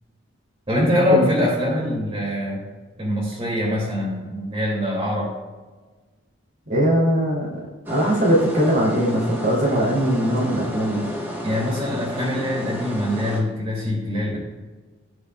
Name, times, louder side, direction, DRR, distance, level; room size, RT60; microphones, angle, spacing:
voice 1, 0.7-2.6 3.0-5.3 11.4-14.4, left 1 dB, 30° right, -5 dB, 2.4 m, -23 dB
voice 2, 6.7-7.6 7.9-11.0, equal, 55° right, -5 dB, 2.8 m, -20 dB
sound 1, 7.9-13.4, equal, 10° right, 1.3 m, -32 dB
18.5 x 6.2 x 2.3 m, 1.3 s
head